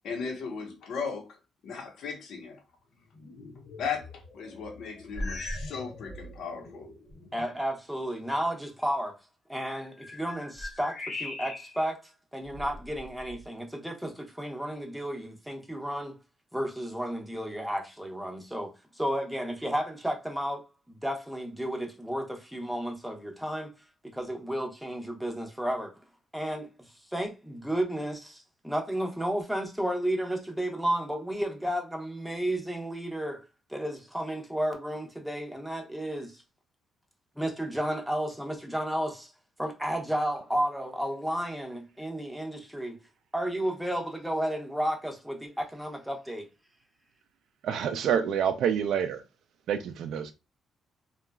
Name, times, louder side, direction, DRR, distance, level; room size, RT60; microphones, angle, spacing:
voice 1, 0.0-1.4 1.6-2.6 3.8-6.9, left 5 dB, 70° left, 0.9 m, -36 dB
sound 1, 2.9-7.7, left 3 dB, 20° left, 1.2 m, -48 dB
sound 2, 5.1-5.8 6.1-6.4 7.1-7.2 9.6-11.9 12.5-13.5, left 1 dB, 40° left, 0.8 m, -39 dB
voice 2, 7.3-9.2 9.5-12.0 12.3-16.2 16.5-20.6 21.0-23.7 24.0-26.0 26.3-26.7 27.1-33.4 33.7-36.4 37.4-39.3 39.6-43.0 43.3-46.5, equal, ahead, 0.7 m, -32 dB
voice 3, 47.6-49.2 49.7-50.3, right 8 dB, 75° right, 0.4 m, -27 dB
2.9 x 2.3 x 2.2 m
cardioid pair, 90°, 0 cm